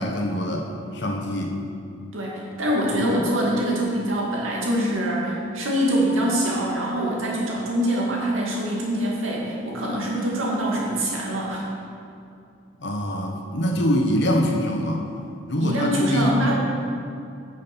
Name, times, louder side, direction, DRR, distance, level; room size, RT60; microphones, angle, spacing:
voice 1, 0.0-1.6 2.9-3.1 12.8-15.0 15.5-16.5, equal, 60° left, 1 dB, 1.3 m, -24 dB
voice 2, 2.1-11.6 15.6-16.5, right 1 dB, 85° right, -3 dB, 2.3 m, -24 dB
9.2 x 6.3 x 6.2 m, 2.5 s
head